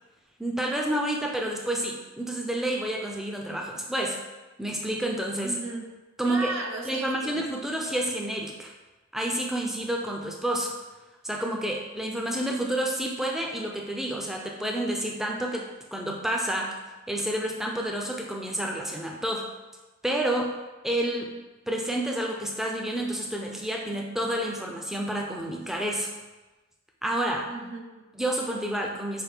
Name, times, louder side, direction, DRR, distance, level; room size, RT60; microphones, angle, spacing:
voice 1, 0.4-4.2 4.6-5.5 6.2-6.5 6.9-8.7 9.1-10.7 11.2-15.6 15.9-16.7 17.1-19.5 20.0-20.5 20.8-21.3 21.7-26.1 27.0-27.5 28.1-29.2, right 1 dB, ahead, 0 dB, 0.4 m, -29 dB
voice 2, 5.4-5.9 6.2-7.4 27.5-28.1, right 2 dB, 65° right, 1 dB, 0.7 m, -35 dB
5.6 x 2.6 x 3.4 m, 1.2 s
head